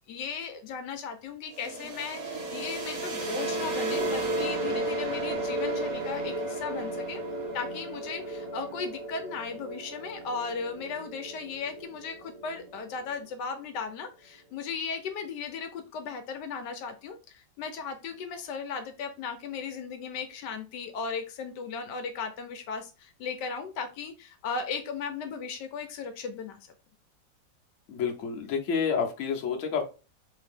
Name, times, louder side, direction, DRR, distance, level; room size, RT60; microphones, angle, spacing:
voice 1, 0.1-7.2 7.5-26.7, left 5 dB, 80° left, 7 dB, 1.2 m, -36 dB
sound 1, 1.5-13.2, right 2 dB, 65° right, 1.2 m, -34 dB
voice 2, 27.9-29.8, left 6 dB, 60° left, 2 dB, 0.9 m, -29 dB
3.3 x 2.7 x 3.4 m, 0.32 s
omnidirectional pair, 1.9 m